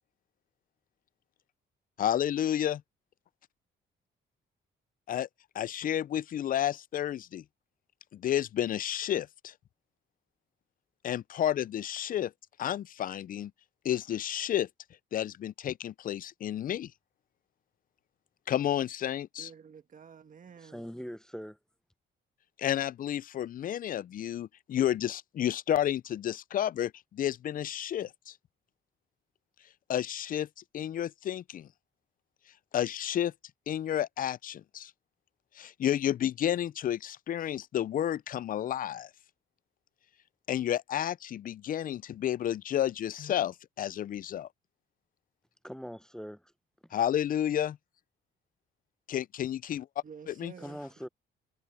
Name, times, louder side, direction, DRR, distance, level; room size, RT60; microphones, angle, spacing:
voice 1, 2.0-2.8 5.1-5.3 5.5-7.4 8.1-9.5 11.0-12.3 12.6-13.5 13.8-14.7 15.1-16.9 18.5-19.5 22.6-28.3 29.9-30.5 30.7-31.7 32.7-33.3 33.7-34.9 35.6-39.1 40.5-44.5 46.9-47.8 49.1-49.9 50.3-50.5, left 11 dB, 45° left, 0.4 m, -31 dB
voice 2, 19.4-20.9 50.0-51.1, right 6 dB, 40° right, 1.4 m, -51 dB
voice 3, 20.6-21.6 45.6-46.5 50.6-51.1, equal, 5° left, 0.6 m, -42 dB
cardioid pair, 90°, 20 cm